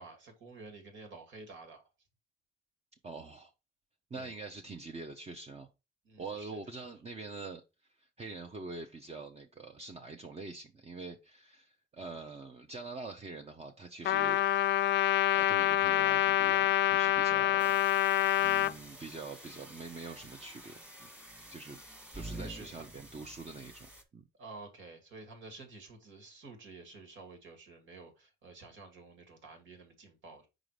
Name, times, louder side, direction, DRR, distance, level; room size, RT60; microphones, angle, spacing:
voice 1, 0.0-1.8 4.1-4.4 6.0-6.9 11.9-12.1 22.3-22.8 24.4-30.5, right 3 dB, 75° right, 2.2 m, -51 dB
voice 2, 3.0-3.5 4.1-5.7 6.2-7.6 8.0-14.4 15.3-17.7 18.4-21.1 21.5-21.8 22.1-23.9 24.1-24.2, right 3 dB, 30° right, 0.8 m, -45 dB
Trumpet, 14.0-18.7, left 12 dB, 65° left, 0.4 m, -26 dB
sound 1, 17.6-24.0, right 1 dB, 5° right, 1.5 m, -49 dB
5.0 x 3.8 x 4.9 m
cardioid pair, 90°, 20 cm